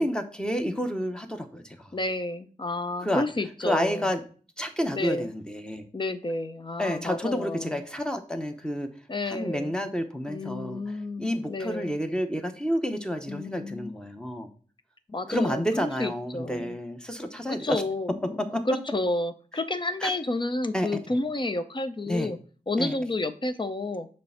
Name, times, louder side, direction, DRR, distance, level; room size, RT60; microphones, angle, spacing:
voice 1, 0.0-1.9 3.0-3.2 3.6-4.2 4.6-5.8 6.8-8.9 9.3-14.5 15.3-17.8 18.5-18.6 20.0-20.1 20.7-20.9 22.1-22.3 22.8-22.9, equal, 5° left, 6 dB, 0.9 m, -30 dB
voice 2, 1.9-4.1 4.9-5.3 5.9-7.8 9.1-9.7 10.3-12.0 13.3-14.0 15.1-16.8 17.5-22.4 22.7-24.1, left 2 dB, 35° left, 10 dB, 0.6 m, -31 dB
6.8 x 3.2 x 5.7 m, 0.41 s
wide cardioid pair, 75°, 14 cm